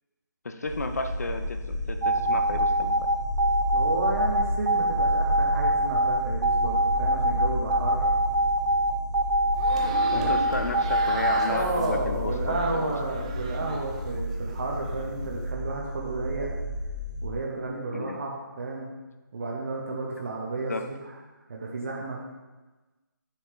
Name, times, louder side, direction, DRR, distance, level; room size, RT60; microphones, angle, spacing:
voice 1, 0.4-3.1 10.1-12.8 17.9-18.2 20.7-20.8, left 3 dB, 50° left, 7 dB, 0.6 m, -33 dB
sound 1, 0.6-17.3, equal, 55° right, 1.4 m, -32 dB
sound 2, 2.0-11.6, right 1 dB, 90° right, 0.8 m, -24 dB
voice 2, 3.7-8.1 10.1-10.3 11.5-16.5 17.2-18.9 19.3-21.1 21.5-22.2, right 3 dB, 40° right, -2 dB, 1.0 m, -32 dB
sound 3, 9.5-14.0 14.3-15.1, right 3 dB, 20° right, 0.5 m, -37 dB
10.0 x 5.7 x 3.1 m, 1.2 s
figure-of-eight pair, 170°, 11 cm